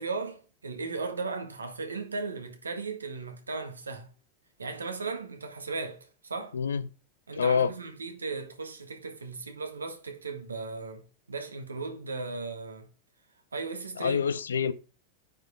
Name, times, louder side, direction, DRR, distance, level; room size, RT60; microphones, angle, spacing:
voice 1, 0.0-4.1 4.6-6.6 7.3-12.9 13.5-14.3, right 4 dB, 75° right, 1.5 m, -36 dB
voice 2, 6.5-6.8 7.4-7.7 14.0-14.7, left 6 dB, 70° left, 0.6 m, -26 dB
9.3 x 5.1 x 3.5 m
figure-of-eight pair, 90°, 0 cm